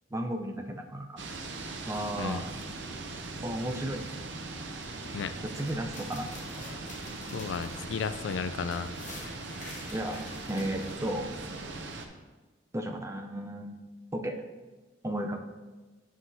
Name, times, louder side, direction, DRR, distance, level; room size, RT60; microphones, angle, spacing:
voice 1, 0.1-1.2 1.9-2.5 3.4-4.2 5.4-6.3 9.9-11.3 12.7-13.7 14.1-14.4 15.0-15.4, right 1 dB, 15° right, 4 dB, 0.5 m, -34 dB
sound 1, 1.2-12.1, right 3 dB, 70° right, 0.7 m, -40 dB
sound 2, 5.5-10.9, left 2 dB, 45° left, 1.7 m, -48 dB
voice 2, 7.3-8.9, left 5 dB, 85° left, 12 dB, 0.4 m, -33 dB
9.6 x 5.8 x 2.7 m, 1.3 s
head